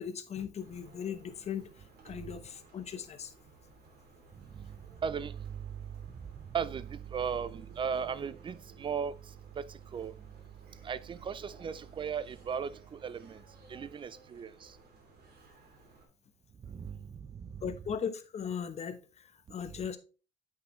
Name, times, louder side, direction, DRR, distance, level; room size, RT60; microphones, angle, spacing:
voice 1, 0.0-1.7 2.0-3.3 17.6-20.0, left 7 dB, 40° left, 1.0 m, -38 dB
sound 1, 0.6-16.1, right 3 dB, 70° right, 2.9 m, -58 dB
voice 2, 5.0-5.6 6.5-9.1 9.6-10.1 10.8-13.4 13.7-14.7 16.7-17.1 17.4-17.6, right 7 dB, 30° right, 0.5 m, -36 dB
8.4 x 5.7 x 3.1 m
cardioid pair, 110°, 17 cm